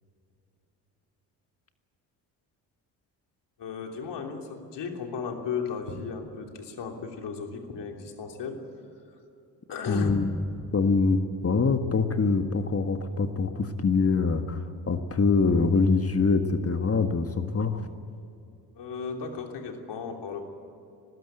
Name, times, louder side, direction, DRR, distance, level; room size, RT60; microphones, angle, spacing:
voice 1, 3.6-8.6 9.7-10.1 10.6-10.7 18.7-20.4, left 5 dB, 60° left, 3 dB, 3.2 m, -35 dB
voice 2, 9.9-10.3 10.7-11.2 11.4-17.9, left 4 dB, 30° left, 7 dB, 1.7 m, -24 dB
19.5 x 16.5 x 9.2 m, 2.7 s
hypercardioid pair, 50°, 48 cm